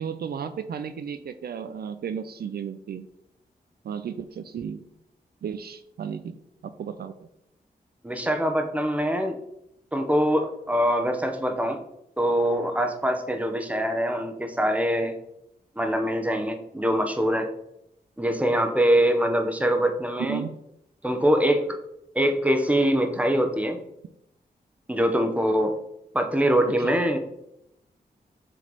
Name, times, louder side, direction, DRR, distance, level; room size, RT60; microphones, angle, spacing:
voice 1, 0.0-3.1 3.8-4.8 5.4-7.1 20.2-20.6 26.8-27.0, right 7 dB, 70° right, 10 dB, 0.4 m, -34 dB
voice 2, 8.0-9.4 9.9-11.8 12.2-15.1 15.8-17.5 18.2-20.4 21.0-21.8 22.1-23.8 24.9-25.7 26.1-27.2, equal, 10° right, 5 dB, 1.0 m, -23 dB
7.5 x 3.3 x 4.0 m, 0.82 s
cardioid pair, 60°, 17 cm